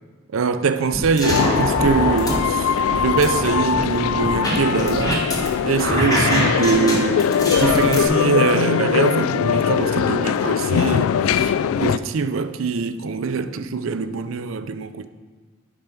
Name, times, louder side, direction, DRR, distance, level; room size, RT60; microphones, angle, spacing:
voice 1, 0.3-5.2 5.6-11.5 11.8-15.1, right 5 dB, 70° right, 0.5 m, -23 dB
sound 1, 0.9-2.4 2.8-5.5 5.8-8.0, equal, 20° left, 1.4 m, -24 dB
sound 2, 1.2-12.0, left 7 dB, 90° left, 0.3 m, -21 dB
8.7 x 5.9 x 5.3 m
head